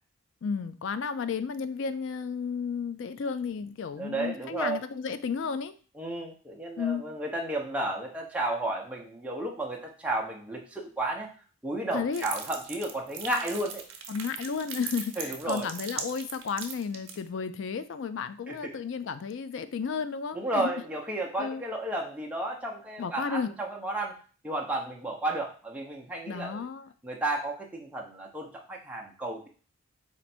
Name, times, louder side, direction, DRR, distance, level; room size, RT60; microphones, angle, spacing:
voice 1, 0.4-5.7 6.8-7.0 11.9-12.3 14.1-20.7 21.4-21.6 23.0-23.5 26.3-26.9, left 5 dB, 60° left, 12 dB, 0.3 m, -33 dB
voice 2, 4.0-4.8 6.0-11.3 11.6-13.8 15.2-15.7 18.5-18.7 20.3-24.2 24.4-26.7 27.0-29.5, right 2 dB, 5° right, -2 dB, 0.7 m, -33 dB
sound 1, 12.1-17.2, right 7 dB, 65° right, 0.8 m, -39 dB
4.3 x 2.5 x 4.2 m, 0.38 s
head